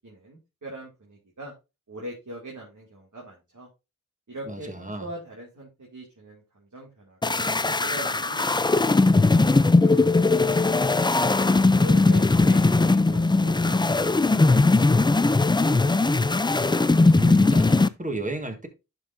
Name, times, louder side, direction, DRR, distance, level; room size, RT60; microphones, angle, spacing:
voice 1, 0.0-1.5 1.9-3.7 4.3-10.8 11.5-15.9, right 1 dB, 70° right, 2.3 m, -42 dB
voice 2, 4.5-5.1 17.1-18.7, right 1 dB, 25° right, 1.6 m, -32 dB
sound 1, 7.2-17.9, left 3 dB, 15° left, 0.3 m, -19 dB
11.5 x 5.5 x 2.6 m
wide cardioid pair, 50°, 31 cm